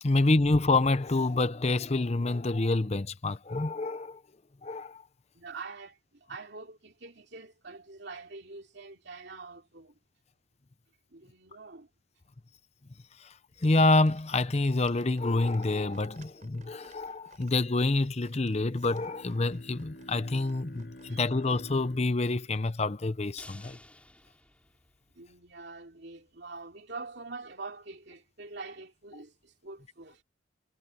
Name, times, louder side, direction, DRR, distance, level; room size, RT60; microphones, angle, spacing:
voice 1, 0.0-4.2 4.6-5.0 13.2-13.3 13.6-23.8, left 2 dB, 30° left, 0.7 m, -27 dB
voice 2, 5.3-10.0 11.1-11.9 21.1-21.2 25.1-30.2, right 3 dB, 55° right, 3.1 m, -45 dB
sound 1, 13.5-21.6, right 4 dB, 40° right, 5.9 m, -60 dB
Bowed string instrument, 18.8-23.6, equal, 50° left, 6.2 m, -51 dB
sound 2, 23.4-25.5 25.8-25.9 26.3-26.4, left 1 dB, 5° left, 3.8 m, -53 dB
head